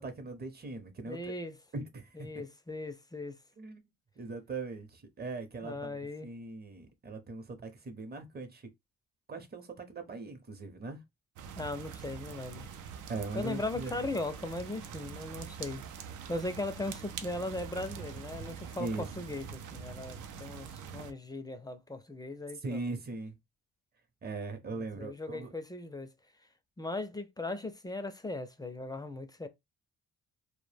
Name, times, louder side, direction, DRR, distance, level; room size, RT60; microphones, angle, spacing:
voice 1, 0.0-1.3 1.7-2.3 3.6-3.8 4.2-6.0 6.2-8.6 9.3-11.0 13.1-13.9 18.8-19.1 22.6-23.4 24.2-25.5, right 3 dB, 30° right, 0.7 m, -40 dB
voice 2, 1.1-1.6 2.1-3.4 5.6-6.3 11.6-12.7 13.3-15.8 16.3-22.8 24.8-26.1 26.8-29.5, left 2 dB, 15° left, 0.4 m, -38 dB
sound 1, 11.4-21.1, right 7 dB, 80° right, 0.5 m, -44 dB
2.1 x 2.1 x 3.2 m
cardioid pair, 90°, 30 cm